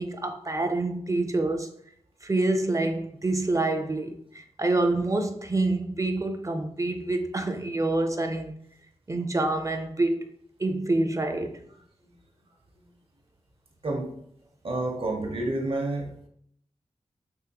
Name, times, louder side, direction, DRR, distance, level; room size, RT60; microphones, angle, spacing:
voice 1, 0.0-1.7 2.2-8.5 9.1-10.3 10.6-11.6, right 2 dB, 30° right, 0.6 m, -27 dB
voice 2, 14.6-16.1, right 2 dB, 55° right, 1.0 m, -29 dB
3.6 x 3.2 x 2.9 m
cardioid pair, 40°, 11 cm